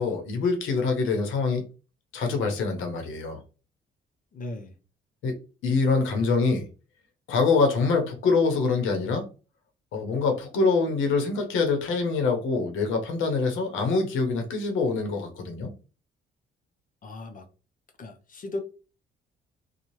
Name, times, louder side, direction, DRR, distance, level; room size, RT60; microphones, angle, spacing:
voice 1, 0.0-1.6 2.1-3.4 5.2-5.4 5.6-6.7 7.3-9.3 9.9-15.7, left 4 dB, 85° left, 0.9 m, -25 dB
voice 2, 4.3-4.7 17.0-17.5 18.0-18.6, left 2 dB, 45° left, 0.6 m, -36 dB
2.8 x 2.3 x 3.0 m
cardioid pair, 90°, 20 cm